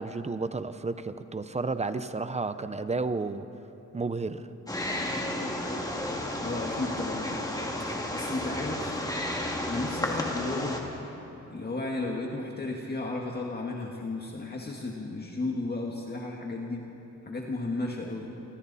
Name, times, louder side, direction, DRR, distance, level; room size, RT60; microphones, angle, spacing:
voice 1, 0.0-3.5 3.9-4.5, right 3 dB, 20° right, 11 dB, 0.7 m, -32 dB
Wild animals, 4.7-10.8, left 1 dB, 10° left, 2.2 m, -32 dB
voice 2, 6.4-7.4 8.1-9.0 9.6-10.8 11.5-16.9 17.2-18.3, left 2 dB, 35° left, -1 dB, 1.7 m, -34 dB
29.5 x 25.0 x 4.2 m, 3.0 s
wide cardioid pair, 135°, 29 cm